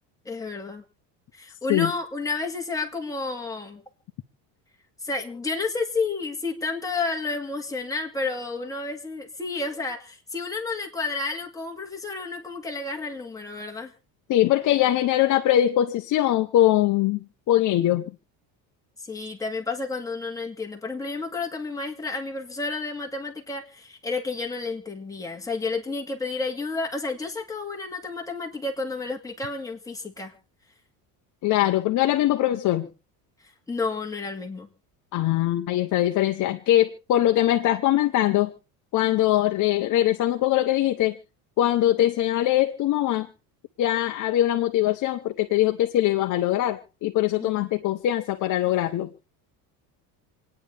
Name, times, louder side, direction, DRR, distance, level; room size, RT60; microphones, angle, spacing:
voice 1, 0.3-0.8 1.3-3.8 5.0-13.9 19.0-30.3 33.7-34.7 47.4-47.5, left 3 dB, 10° left, 1 dB, 2.2 m, -31 dB
voice 2, 14.3-17.2 17.5-18.1 31.4-32.9 35.1-38.5 38.9-41.2 41.6-43.3 43.8-49.1, left 13 dB, 45° left, 6 dB, 0.9 m, -22 dB
27.5 x 9.8 x 3.5 m, 0.34 s
cardioid pair, 145°, 41 cm